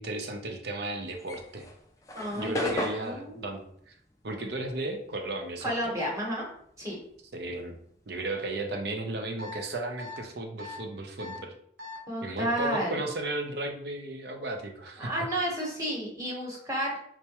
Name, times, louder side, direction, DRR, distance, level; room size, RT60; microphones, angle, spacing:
voice 1, 0.0-1.7 2.3-4.0 4.2-5.9 7.3-7.8 8.1-11.5 12.2-15.1, right 2 dB, 60° right, 4 dB, 0.5 m, -34 dB
sound 1, 1.1-5.8 6.1-8.1, left 1 dB, 15° left, 0.3 m, -37 dB
voice 2, 2.1-3.4 5.6-6.5 6.8-7.0 12.1-13.0 15.0-17.0, equal, 15° right, -3 dB, 0.9 m, -31 dB
sound 2, 9.4-9.6 10.0-10.2 10.6-10.8 11.2-11.4 11.8-12.0, left 3 dB, 80° right, 1.0 m, -41 dB
4.5 x 2.1 x 2.9 m, 0.68 s
head